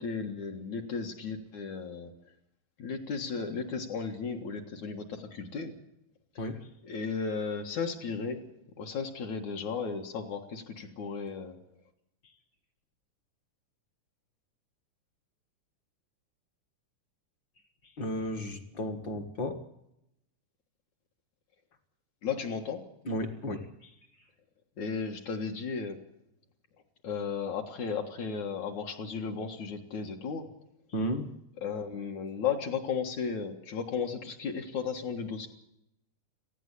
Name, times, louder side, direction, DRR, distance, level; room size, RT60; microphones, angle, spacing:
voice 1, 0.0-2.1 2.8-5.7 6.4-6.5 6.8-8.4 8.8-11.6 22.2-22.8 24.8-26.0 27.0-30.5 31.6-35.5, left 5 dB, 65° left, 2 dB, 2.9 m, -35 dB
voice 2, 18.0-19.6 23.0-23.9 30.9-31.3, equal, 45° left, 7 dB, 1.7 m, -34 dB
18.5 x 16.0 x 10.0 m, 0.81 s
omnidirectional pair, 3.8 m